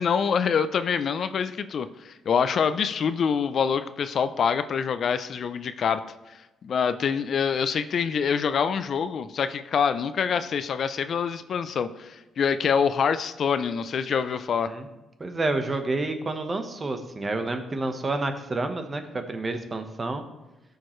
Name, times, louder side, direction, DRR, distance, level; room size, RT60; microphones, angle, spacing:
voice 1, 0.0-6.0 6.6-14.7, left 6 dB, 55° left, 12 dB, 0.5 m, -25 dB
voice 2, 15.2-20.2, right 2 dB, 30° right, 7 dB, 1.1 m, -29 dB
14.0 x 6.6 x 3.1 m, 1.0 s
cardioid pair, 90°, 0 cm